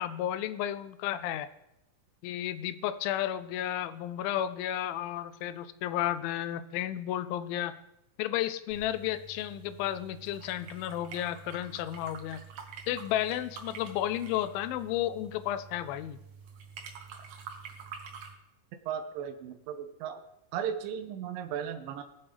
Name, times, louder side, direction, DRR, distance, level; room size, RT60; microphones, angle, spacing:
voice 1, 0.0-1.5 2.2-7.7 8.2-12.4 12.9-16.2, left 12 dB, 90° left, 13 dB, 2.4 m, -32 dB
sound 1, 8.7-18.3, right 6 dB, 65° right, 1.9 m, -47 dB
voice 2, 18.9-20.2 20.5-22.0, right 8 dB, 80° right, 6 dB, 2.3 m, -36 dB
19.5 x 7.2 x 3.4 m, 0.83 s
omnidirectional pair, 4.1 m